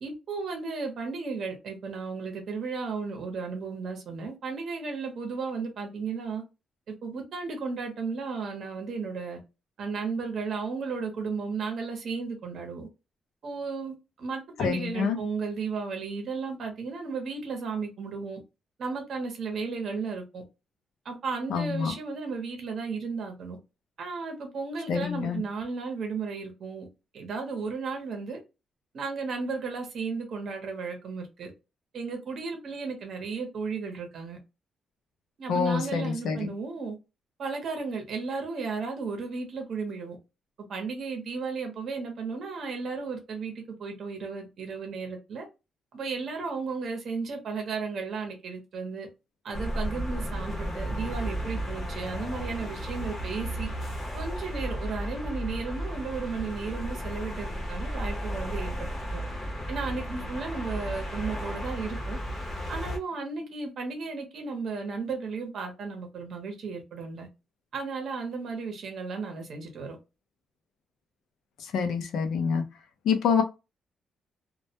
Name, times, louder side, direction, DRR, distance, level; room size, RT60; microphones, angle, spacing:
voice 1, 0.0-6.4 6.9-9.4 9.8-12.9 13.4-18.4 18.8-20.4 21.0-23.6 24.0-26.9 27.1-28.4 28.9-31.5 31.9-34.4 35.4-36.9 37.4-40.2 40.7-45.5 45.9-49.1 49.4-53.7 54.1-59.2 59.7-62.2 62.7-67.3 67.7-70.0, right 4 dB, 50° right, 0.7 m, -34 dB
voice 2, 14.6-15.2 21.5-21.9 24.9-25.4 35.5-36.5 71.7-72.6 73.0-73.4, left 6 dB, 75° left, 0.5 m, -26 dB
sound 1, 49.5-63.0, equal, 30° left, 0.7 m, -34 dB
2.2 x 2.1 x 2.7 m
cardioid pair, 170°, 0 cm